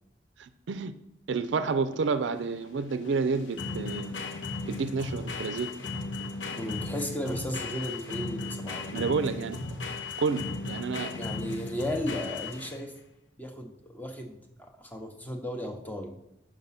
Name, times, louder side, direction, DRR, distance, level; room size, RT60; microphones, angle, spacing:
voice 1, 0.4-0.9 1.3-4.1 4.7-5.7 8.9-9.6 10.2-11.1, right 4 dB, 70° right, 12 dB, 0.4 m, -29 dB
sound 1, 1.3-13.0, left 3 dB, 75° left, 0.8 m, -36 dB
voice 2, 6.5-9.1 11.1-12.9 13.4-16.1, left 1 dB, 10° left, 4 dB, 0.7 m, -35 dB
5.2 x 5.0 x 5.6 m, 0.85 s
head